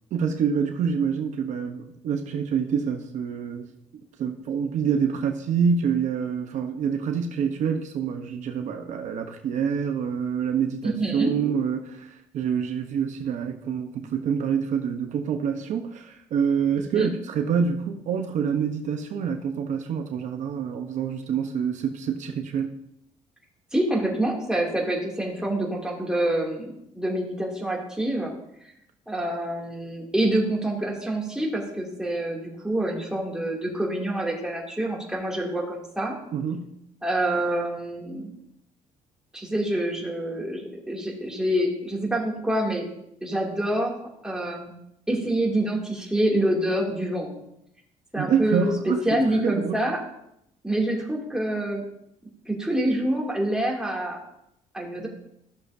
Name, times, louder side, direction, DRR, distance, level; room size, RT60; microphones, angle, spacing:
voice 1, 0.1-3.7 4.2-22.7 36.3-36.7 48.2-49.9, right 7 dB, 65° right, 5 dB, 0.8 m, -26 dB
voice 2, 10.8-11.3 16.9-17.1 23.7-28.3 29.1-36.1 37.0-38.3 39.3-42.9 43.2-43.9 44.2-44.7 45.1-47.3 48.1-50.0 50.6-51.8 52.5-54.2 54.7-55.1, right 1 dB, 5° right, -2 dB, 2.4 m, -26 dB
13.5 x 6.6 x 2.6 m, 0.78 s
cardioid pair, 95°, 14 cm